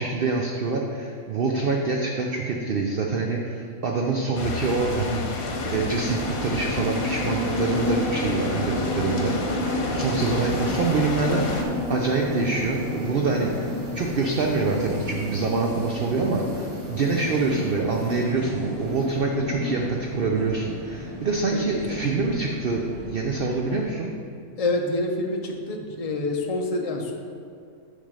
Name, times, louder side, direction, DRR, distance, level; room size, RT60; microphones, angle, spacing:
voice 1, 0.0-24.1, right 3 dB, 55° right, 0 dB, 0.7 m, -26 dB
sound 1, 4.4-11.6, left 3 dB, 80° left, 1.4 m, -31 dB
sound 2, 5.4-23.9, left 1 dB, 85° right, 2.0 m, -32 dB
voice 2, 24.6-27.1, left 2 dB, 35° left, 2 dB, 0.6 m, -27 dB
8.9 x 3.4 x 6.5 m, 2.3 s
omnidirectional pair, 1.5 m